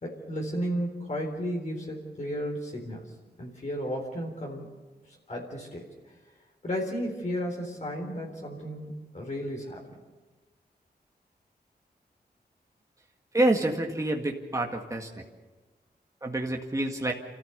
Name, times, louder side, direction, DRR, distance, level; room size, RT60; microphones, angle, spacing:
voice 1, 0.0-3.1 3.4-4.7 5.3-5.9 6.6-9.8, equal, 45° left, -1 dB, 4.0 m, -33 dB
voice 2, 13.3-15.2 16.2-17.1, right 1 dB, 20° right, 2 dB, 1.9 m, -27 dB
28.0 x 14.5 x 6.8 m, 1.3 s
wide cardioid pair, 85°, 17 cm